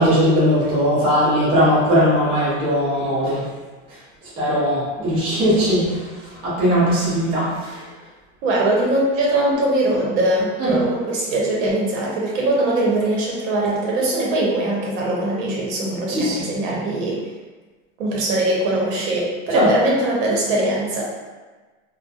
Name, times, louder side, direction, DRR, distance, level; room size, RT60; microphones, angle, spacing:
voice 1, 0.0-3.5 4.4-6.0 6.4-7.8 10.6-10.7 16.1-16.5 19.5-19.7, equal, 15° right, -10 dB, 0.5 m, -19 dB
voice 2, 8.4-17.2 18.0-21.0, right 1 dB, 70° right, -4 dB, 0.8 m, -21 dB
2.3 x 2.2 x 2.6 m, 1.3 s
supercardioid pair, 170°, 39 cm